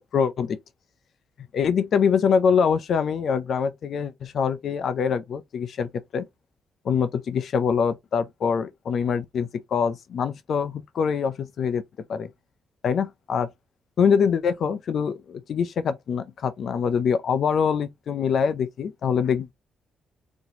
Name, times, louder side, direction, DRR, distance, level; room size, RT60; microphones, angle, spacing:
voice 1, 0.1-0.6 1.5-6.3 6.8-11.8 12.1-12.3 12.8-13.5 14.0-19.5, left 6 dB, 60° left, 0.4 m, -24 dB
4.2 x 2.8 x 2.8 m
cardioid pair, 125°, 0 cm